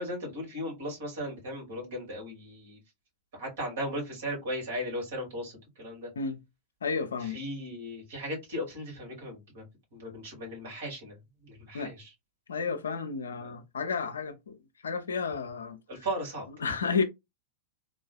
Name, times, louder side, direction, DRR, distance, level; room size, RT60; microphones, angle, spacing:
voice 1, 0.0-2.8 3.3-6.1 7.2-9.6 9.9-12.1 13.4-13.5 15.9-16.5, equal, 55° right, 2.2 m, -37 dB
voice 2, 6.8-7.4 11.7-11.9 12.5-14.6 14.8-15.8 16.6-17.0, left 5 dB, 70° left, 0.5 m, -31 dB
3.6 x 2.4 x 2.3 m
figure-of-eight pair, 90°, 0 cm